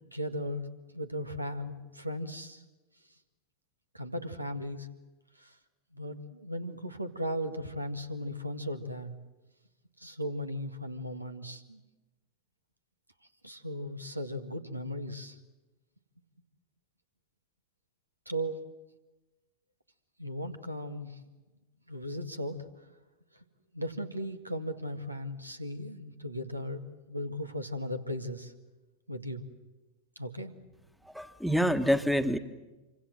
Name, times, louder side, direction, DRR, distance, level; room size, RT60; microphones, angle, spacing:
voice 1, 0.1-0.7 0.9-2.6 3.9-4.9 5.4-5.6 5.9-9.1 10.0-11.8 13.4-15.4 18.3-18.6 20.2-21.2 21.9-22.7 23.3-23.4 23.7-28.5 29.1-29.4 30.2-30.5, equal, 85° right, 7 dB, 1.9 m, -37 dB
voice 2, 31.0-32.4, equal, ahead, 10 dB, 1.5 m, -27 dB
27.0 x 25.0 x 7.7 m, 1.1 s
figure-of-eight pair, 90°, 0 cm